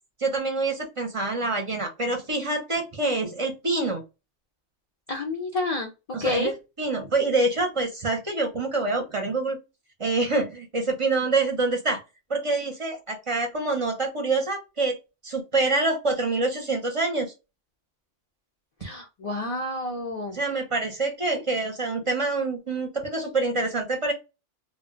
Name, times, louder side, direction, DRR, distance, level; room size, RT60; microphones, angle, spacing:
voice 1, 0.2-4.0 6.1-6.5 6.8-9.6 10.0-12.0 12.3-15.0 15.2-17.3 20.3-24.1, right 3 dB, 35° right, 3 dB, 0.5 m, -26 dB
voice 2, 5.1-6.5 18.8-20.4, left 2 dB, 65° left, 2 dB, 0.3 m, -29 dB
2.3 x 2.1 x 3.6 m, 0.27 s
omnidirectional pair, 1.2 m